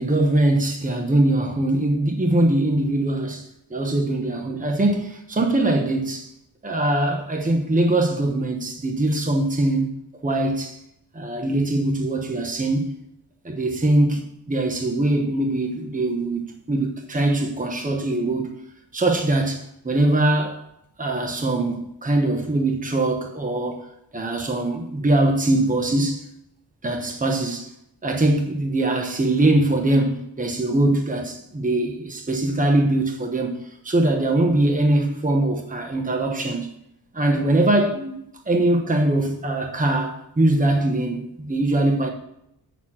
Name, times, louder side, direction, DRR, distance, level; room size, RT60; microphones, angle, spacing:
voice 1, 0.0-6.3 6.6-9.9 10.2-10.8 11.1-12.9 13.4-18.5 18.9-20.6 21.0-23.9 24.1-26.2 26.8-27.7 28.0-36.7 37.1-42.1, right 2 dB, 20° right, 1.1 m, -22 dB
8.2 x 6.6 x 5.9 m
wide cardioid pair, 170°, 40 cm